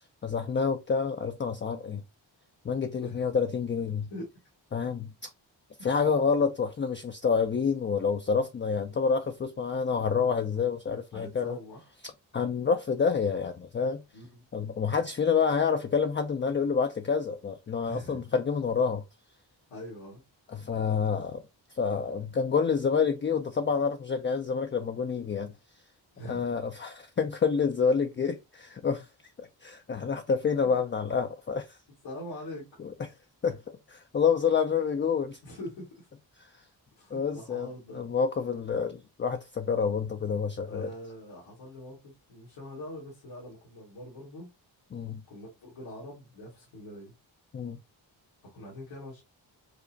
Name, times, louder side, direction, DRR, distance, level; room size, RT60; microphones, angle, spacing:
voice 1, 0.2-2.0 2.6-4.1 4.7-5.3 5.8-11.6 12.3-14.0 14.5-19.0 20.5-21.4 21.7-25.5 26.3-29.1 29.4-31.8 32.8-32.9 33.4-35.4 37.1-37.7 37.9-40.9 44.9-45.2 47.5-47.8, left 6 dB, 25° left, 0.4 m, -28 dB
voice 2, 11.1-11.9 14.1-14.4 17.8-18.2 19.7-20.2 26.1-26.5 32.0-32.7 35.4-36.1 37.0-38.1 40.7-44.5 45.3-47.1 48.5-49.2, left 1 dB, 85° left, 1.7 m, -43 dB
5.0 x 2.1 x 2.6 m
cardioid pair, 55°, 46 cm